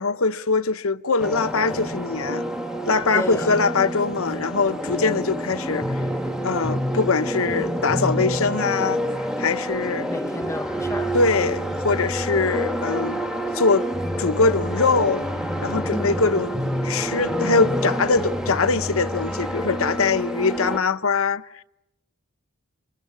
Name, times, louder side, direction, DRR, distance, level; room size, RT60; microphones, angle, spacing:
voice 1, 0.0-2.4 2.9-6.0 6.4-9.0 9.4-10.1 11.1-13.2 13.5-13.9 14.2-15.3 15.6-16.5 16.8-21.4, left 4 dB, 70° left, 0.9 m, -22 dB
sound 1, 1.2-20.8, equal, 5° right, 1.2 m, -27 dB
voice 2, 3.1-3.6 10.1-11.2 15.9-16.3, left 1 dB, 15° left, 0.9 m, -31 dB
28.5 x 25.5 x 7.4 m
head